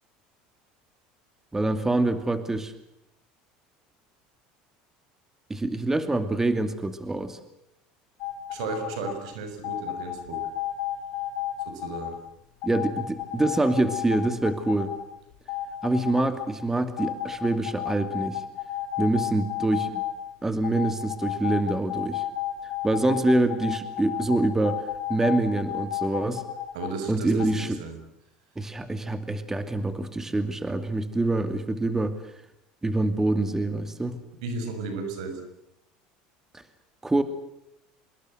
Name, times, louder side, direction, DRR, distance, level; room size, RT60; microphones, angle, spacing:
voice 1, 1.5-2.7 5.5-7.4 12.6-14.9 15.8-18.4 19.0-20.0 20.4-22.2 22.8-24.8 25.1-26.4 27.1-27.8 28.6-32.2 32.8-34.2 37.0-37.2, right 2 dB, 10° right, 9 dB, 2.5 m, -25 dB
sound 1, 8.2-9.2 9.6-12.1 12.6-15.0 15.3-16.5 17.0-20.2 20.6-26.9 27.4-27.5, left 13 dB, 70° left, 3.6 m, -32 dB
voice 2, 8.5-10.5 11.6-12.2 26.7-28.0 34.4-35.4, right 3 dB, 85° right, 8 dB, 6.4 m, -34 dB
26.0 x 21.5 x 7.8 m, 0.83 s
supercardioid pair, 95°, 3 cm